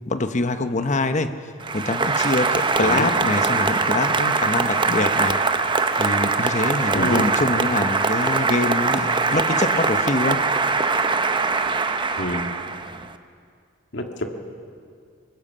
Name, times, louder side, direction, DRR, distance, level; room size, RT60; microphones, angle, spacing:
voice 1, 0.1-1.3 1.7-5.4 6.0-10.4, left 2 dB, 35° left, 9 dB, 0.9 m, -24 dB
Applause, 1.6-13.1, right 4 dB, 25° right, 0.7 m, -22 dB
voice 2, 6.9-7.3 12.2-12.5 13.9-14.2, left 1 dB, 60° left, 4 dB, 1.9 m, -27 dB
24.0 x 20.0 x 5.6 m, 2.3 s
head